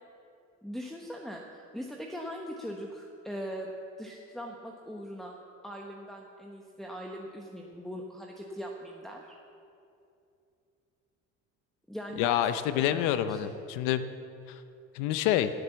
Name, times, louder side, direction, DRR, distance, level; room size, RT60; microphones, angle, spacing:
voice 1, 0.6-3.7 4.0-5.4 5.6-9.3 11.9-13.5, equal, ahead, 0 dB, 1.2 m, -41 dB
voice 2, 12.2-14.1 14.5-14.6 14.9-15.5, left 11 dB, 85° left, 11 dB, 0.8 m, -27 dB
17.0 x 7.9 x 7.0 m, 2.6 s
supercardioid pair, 90°, 31 cm